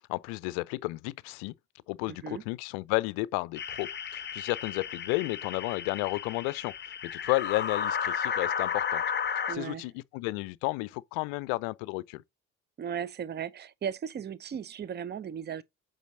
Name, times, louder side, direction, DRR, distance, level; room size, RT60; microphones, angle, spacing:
voice 1, 0.1-1.5 1.9-6.7 7.2-9.0 9.5-12.2, left 22 dB, 65° left, 0.6 m, -32 dB
voice 2, 2.1-2.4 9.5-9.9 12.8-15.6, right 8 dB, 25° right, 0.7 m, -36 dB
sound 1, 3.5-9.6, left 7 dB, 25° left, 0.8 m, -33 dB
8.2 x 4.1 x 3.7 m
hypercardioid pair, 55°, 40 cm